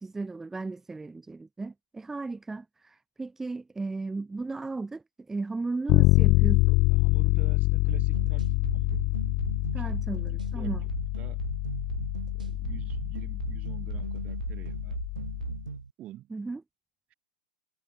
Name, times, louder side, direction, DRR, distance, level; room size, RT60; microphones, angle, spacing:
voice 1, 0.0-6.8 9.7-10.8 16.3-16.6, right 3 dB, 10° right, 2.1 m, -35 dB
Bass guitar, 5.9-15.6, left 23 dB, 40° left, 0.9 m, -26 dB
voice 2, 6.9-8.5 8.7-9.1 9.8-10.2 10.5-11.4 12.3-15.0 16.0-16.3, right 14 dB, 30° right, 4.2 m, -48 dB
sound 1, 7.9-15.9, right 5 dB, 75° right, 2.3 m, -38 dB
figure-of-eight pair, 95°, 4 cm